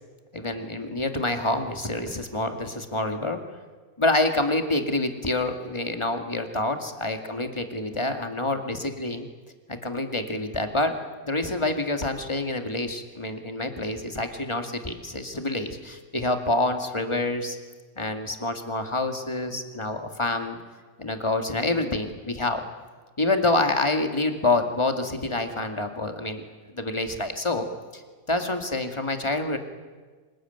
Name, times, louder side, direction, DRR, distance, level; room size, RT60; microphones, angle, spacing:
voice 1, 0.3-3.4 4.0-9.3 9.7-11.0 11.2-17.6 18.0-20.6 21.0-22.6 23.2-27.7 27.9-28.0 28.3-29.6, left 2 dB, 20° left, 5 dB, 2.3 m, -27 dB
26.5 x 20.0 x 9.4 m, 1.4 s
omnidirectional pair, 1.5 m